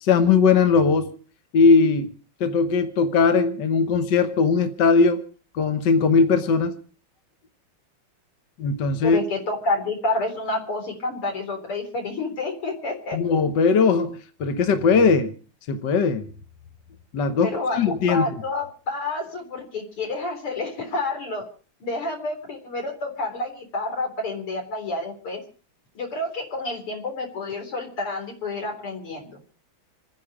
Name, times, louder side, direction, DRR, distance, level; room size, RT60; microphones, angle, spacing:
voice 1, 0.0-1.1 1.5-2.1 2.4-5.2 5.5-6.7 8.6-9.2 13.1-15.3 15.7-16.3 17.1-18.3, left 5 dB, 55° left, 1.7 m, -19 dB
voice 2, 9.0-13.2 17.4-21.5 21.8-25.4 25.9-29.4, left 2 dB, 80° left, 4.7 m, -29 dB
27.5 x 10.0 x 4.9 m
omnidirectional pair, 2.4 m